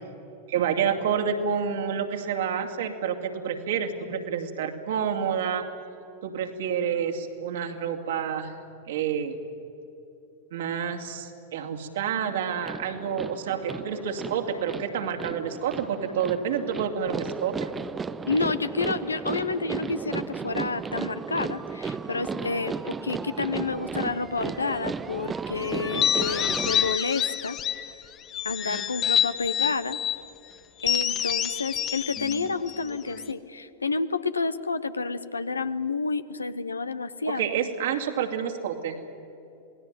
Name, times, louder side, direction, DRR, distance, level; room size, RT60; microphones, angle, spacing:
voice 1, 0.5-5.6 6.2-8.6 8.9-9.4 10.5-17.7 37.3-39.0, right 7 dB, 60° right, 4 dB, 2.5 m, -29 dB
sound 1, 12.7-27.0, right 5 dB, 15° right, 0.7 m, -35 dB
voice 2, 18.3-27.6 28.4-30.0 30.8-37.5, left 4 dB, 75° left, 13 dB, 1.0 m, -29 dB
sound 2, 25.8-27.9 28.3-30.2 30.8-33.3, left 9 dB, 30° left, 1.3 m, -27 dB
27.5 x 19.0 x 9.2 m, 2.9 s
figure-of-eight pair, 90°, 0 cm